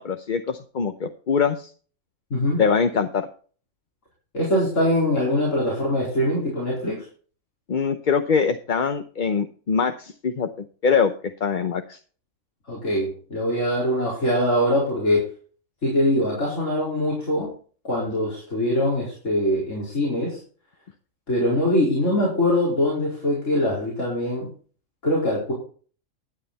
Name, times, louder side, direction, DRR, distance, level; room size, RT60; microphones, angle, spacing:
voice 1, 0.0-1.7 2.6-3.3 7.7-10.5 10.8-12.0, left 6 dB, 45° left, 8 dB, 0.8 m, -23 dB
voice 2, 2.3-2.6 4.3-7.0 12.7-15.3 15.8-17.5 17.8-20.4 21.3-24.5 25.0-25.5, left 1 dB, 75° left, -5 dB, 4.8 m, -23 dB
12.5 x 9.2 x 4.2 m, 0.42 s
omnidirectional pair, 1.3 m